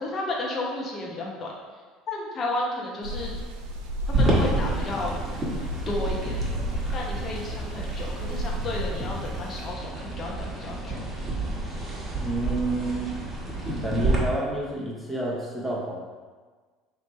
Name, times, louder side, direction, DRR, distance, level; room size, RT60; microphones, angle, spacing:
voice 1, 0.0-1.5 2.1-3.3 4.1-5.1 5.9-6.4 6.9-11.0 11.5-11.6, left 2 dB, 40° left, -2 dB, 1.0 m, -32 dB
sound 1, 3.0-9.7, right 1 dB, 85° right, 0.5 m, -33 dB
sound 2, 4.1-14.2, right 2 dB, 20° right, 1.4 m, -29 dB
voice 2, 12.2-13.1 13.8-16.0, right 1 dB, 10° left, -5 dB, 1.2 m, -29 dB
3.3 x 2.9 x 4.3 m, 1.4 s
hypercardioid pair, 80°, 0 cm